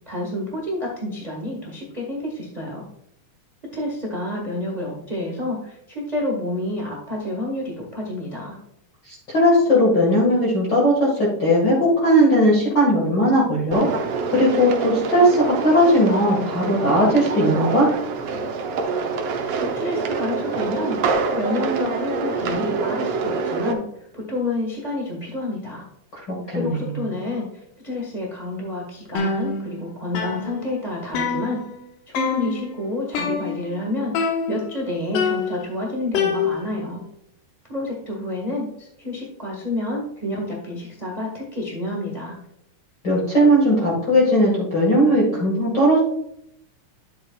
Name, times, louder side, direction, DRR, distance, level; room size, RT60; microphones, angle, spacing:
voice 1, 0.1-2.8 3.7-8.6 19.7-23.9 24.1-25.9 26.5-27.5 27.8-31.6 32.1-37.0 37.7-42.4, left 1 dB, 25° right, -3 dB, 0.8 m, -29 dB
voice 2, 9.1-13.9 14.3-17.9 26.2-27.0 43.0-46.0, equal, 40° left, -5 dB, 2.1 m, -18 dB
sound 1, 13.7-23.7, right 4 dB, 80° right, 1.3 m, -26 dB
sound 2, 29.2-29.9 30.2-31.8 32.2-32.7 33.2-33.8 34.2-34.8 35.2-36.9, left 5 dB, 80° left, 2.9 m, -26 dB
11.0 x 7.7 x 2.4 m, 0.74 s
omnidirectional pair, 3.8 m